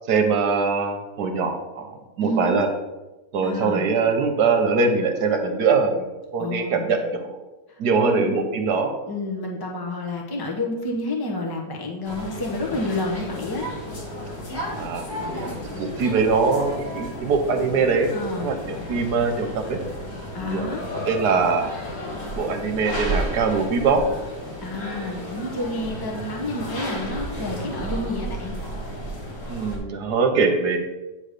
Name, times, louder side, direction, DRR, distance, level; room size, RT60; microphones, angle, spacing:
voice 1, 0.1-2.7 3.3-6.0 6.3-7.2 7.8-8.9 14.8-19.8 20.4-20.8 21.0-21.7 22.4-24.0 29.5-30.8, right 4 dB, 70° right, 5 dB, 1.5 m, -22 dB
voice 2, 2.2-2.6 3.4-3.9 6.4-6.9 7.7-8.4 9.1-13.6 18.1-18.5 20.3-20.8 24.6-28.5, left 2 dB, 15° left, 0 dB, 0.9 m, -29 dB
sound 1, 12.0-29.8, equal, 55° left, 2.5 m, -33 dB
9.0 x 3.3 x 6.6 m, 1.1 s
omnidirectional pair, 1.8 m